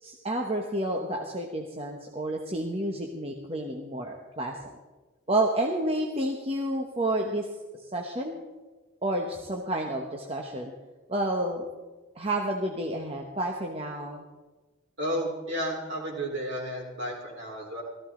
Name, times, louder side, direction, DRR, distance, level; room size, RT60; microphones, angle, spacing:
voice 1, 0.0-4.6 5.3-7.5 7.9-8.4 9.0-10.7 11.1-11.6 12.2-14.2, right 1 dB, 30° right, 1 dB, 1.0 m, -30 dB
voice 2, 15.0-17.8, equal, 60° right, -1 dB, 4.1 m, -32 dB
17.5 x 14.5 x 3.8 m, 1.2 s
head